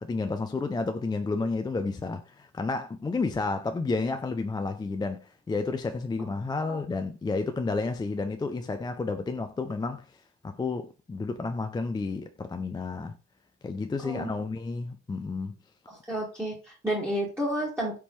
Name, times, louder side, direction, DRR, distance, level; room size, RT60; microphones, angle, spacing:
voice 1, 0.0-10.1 10.4-13.2 13.6-15.6, left 3 dB, 15° left, 0.3 m, -31 dB
voice 2, 15.9-18.0, equal, 10° right, 1.5 m, -31 dB
4.3 x 3.5 x 3.0 m
cardioid pair, 90°, 30 cm